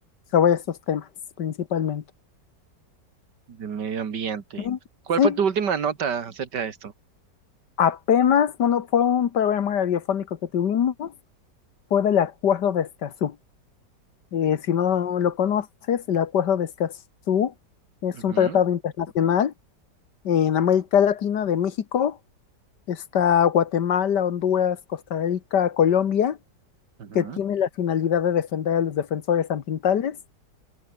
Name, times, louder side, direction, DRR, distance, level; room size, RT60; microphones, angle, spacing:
voice 1, 0.3-1.0 1.4-2.0 4.6-4.8 5.2-5.4 7.8-10.3 10.5-11.1 11.9-13.4 14.3-16.9 17.3-17.5 18.0-19.5 20.3-22.2 22.9-26.4 27.2-30.2, left 8 dB, 75° left, 1.9 m, -22 dB
voice 2, 3.5-4.7 5.1-6.9 18.1-18.6 27.0-27.4, right 7 dB, 75° right, 2.4 m, -28 dB
omnidirectional pair, 1.9 m